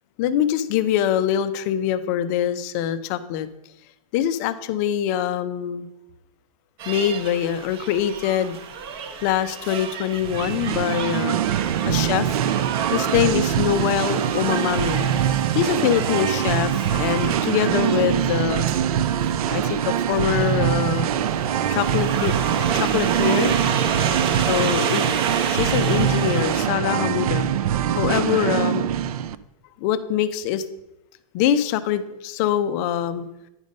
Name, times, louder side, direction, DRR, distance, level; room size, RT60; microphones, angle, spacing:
voice 1, 0.2-3.5 4.1-5.9 6.9-8.6 9.2-11.4 11.9-12.3 12.9-15.1 15.5-18.6 19.5-21.1 21.7-22.3 22.7-23.5 24.5-25.1 25.4-27.5 28.0-28.9 29.8-30.6 31.3-33.3, left 10 dB, 25° left, 12 dB, 0.4 m, -24 dB
sound 1, 6.8-26.7, right 7 dB, 40° right, 0.8 m, -30 dB
Singing, 10.2-29.3, right 10 dB, 75° right, 0.5 m, -23 dB
9.7 x 5.2 x 5.2 m, 0.91 s
supercardioid pair, 170°, 19 cm